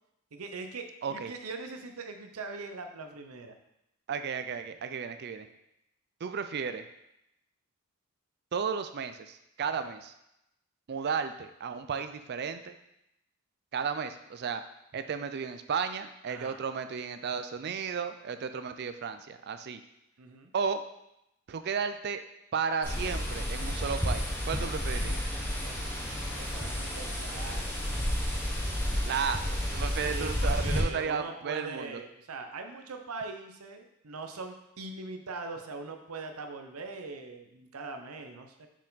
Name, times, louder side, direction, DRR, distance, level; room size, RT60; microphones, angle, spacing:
voice 1, 0.3-3.5 16.3-16.6 20.2-20.5 25.6-28.0 30.1-38.7, right 3 dB, 80° right, 5 dB, 0.7 m, -42 dB
voice 2, 1.0-1.3 4.1-5.5 6.2-6.8 8.5-10.1 10.9-12.7 13.7-14.6 14.9-19.8 20.5-20.8 21.5-22.2 22.5-25.2 29.1-32.0, right 6 dB, 50° right, 9 dB, 0.4 m, -33 dB
sound 1, 22.8-30.8, equal, 10° left, 1.0 m, -31 dB
6.1 x 4.4 x 4.0 m, 0.83 s
head